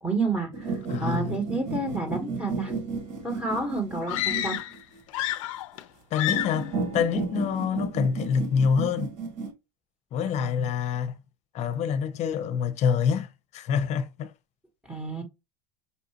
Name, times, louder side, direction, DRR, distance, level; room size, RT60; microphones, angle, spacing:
voice 1, 0.0-2.7 3.2-4.6 10.2-10.5 14.9-15.2, right 3 dB, 5° right, 1.2 m, -30 dB
sound 1, 0.5-5.0 6.3-9.5, right 4 dB, 50° right, 1.7 m, -33 dB
voice 2, 0.9-1.3 6.1-9.1 10.1-11.2 11.5-14.3, left 7 dB, 45° left, 0.7 m, -26 dB
sound 2, 4.1-4.8 5.1-5.8 6.1-6.7, left 14 dB, 85° left, 0.5 m, -29 dB
5.6 x 2.4 x 2.8 m
supercardioid pair, 125°, 16 cm